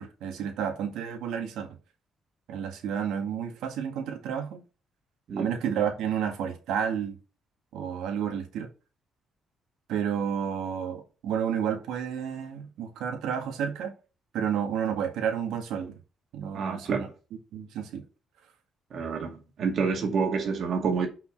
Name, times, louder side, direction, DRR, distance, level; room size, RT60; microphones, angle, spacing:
voice 1, 0.0-1.7 2.5-4.6 5.4-7.2 7.7-8.7 9.9-13.9 14.3-16.0 16.3-17.1 17.5-18.0, right 8 dB, 85° right, 2.0 m, -31 dB
voice 2, 16.5-17.1 18.9-21.1, right 5 dB, 60° right, 2.3 m, -28 dB
6.1 x 5.7 x 6.3 m
cardioid pair, 90°, 0 cm